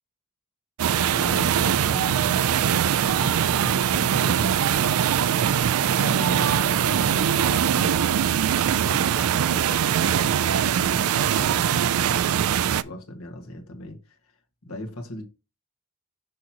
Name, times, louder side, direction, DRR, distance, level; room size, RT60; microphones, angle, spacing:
sound 1, 0.8-12.8, right 9 dB, 70° right, 0.4 m, -22 dB
voice 1, 1.1-4.7 5.9-14.4 14.6-15.2, left 1 dB, 75° left, 1.6 m, -38 dB
6.3 x 5.9 x 2.9 m
head